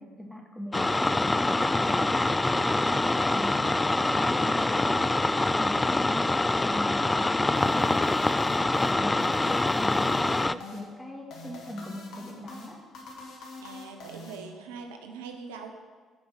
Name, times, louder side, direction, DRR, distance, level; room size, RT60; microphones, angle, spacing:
voice 1, 0.0-6.2 6.6-7.9 8.8-12.8, left 1 dB, ahead, 0 dB, 2.3 m, -40 dB
sound 1, 0.7-10.5, left 2 dB, 20° left, 0.3 m, -25 dB
sound 2, 7.6-14.9, left 2 dB, 65° left, 1.7 m, -45 dB
voice 2, 13.6-15.7, right 5 dB, 85° right, 4 dB, 0.8 m, -42 dB
9.4 x 5.0 x 7.9 m, 1.5 s
hypercardioid pair, 50°, 0 cm